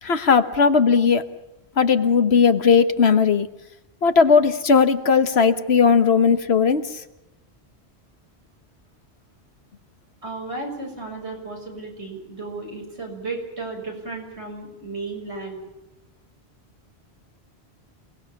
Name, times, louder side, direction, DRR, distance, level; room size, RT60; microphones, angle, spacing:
voice 1, 0.0-1.3 1.8-3.5 4.0-7.0, left 5 dB, 70° left, 10 dB, 1.5 m, -17 dB
voice 2, 10.2-15.6, right 3 dB, 80° right, 1 dB, 7.0 m, -34 dB
28.0 x 19.0 x 7.1 m, 0.94 s
omnidirectional pair, 1.1 m